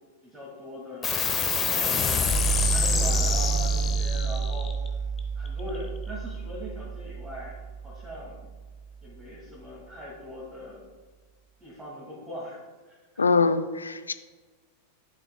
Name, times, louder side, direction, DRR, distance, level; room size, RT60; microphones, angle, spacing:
voice 1, 0.2-1.2 1.6-2.3 2.7-4.7 5.4-8.5 9.0-10.8 11.6-12.6 12.9-13.3, equal, 15° right, -6 dB, 2.2 m, -40 dB
sound 1, 1.0-7.9, equal, 20° left, 0.8 m, -27 dB
voice 2, 13.2-14.1, left 4 dB, 75° left, 11 dB, 0.4 m, -23 dB
11.5 x 5.6 x 2.3 m, 1.4 s
figure-of-eight pair, 90°, 0 cm